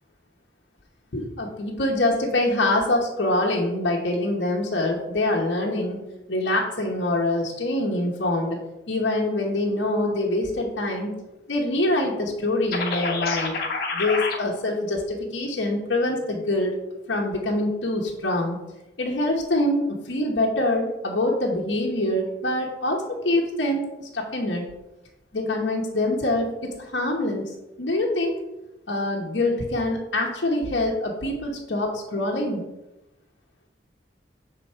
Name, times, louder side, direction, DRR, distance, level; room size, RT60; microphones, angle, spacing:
voice 1, 1.1-6.0 6.3-8.6 8.9-11.1 11.5-13.6 13.9-16.7 17.1-18.6 19.0-23.9 24.1-24.6 25.3-28.4 28.9-32.6, left 1 dB, 75° left, -2 dB, 1.0 m, -25 dB
sound 1, 12.7-14.4, left 4 dB, 55° left, 1.2 m, -27 dB
7.0 x 3.8 x 4.4 m, 0.96 s
head